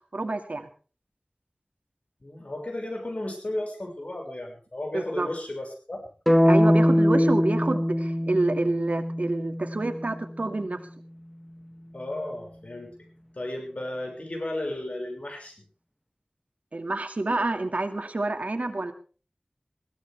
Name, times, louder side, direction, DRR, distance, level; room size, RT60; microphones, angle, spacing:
voice 1, 0.1-0.7 4.9-5.3 6.5-10.8 16.7-18.9, right 2 dB, 75° right, 6 dB, 2.1 m, -28 dB
voice 2, 2.2-6.0 11.9-12.9 13.4-15.5, left 1 dB, 65° left, 2 dB, 6.0 m, -34 dB
sound 1, 6.3-10.3, equal, 5° left, 1.4 m, -22 dB
21.0 x 16.5 x 3.5 m, 0.38 s
wide cardioid pair, 50°, 2 cm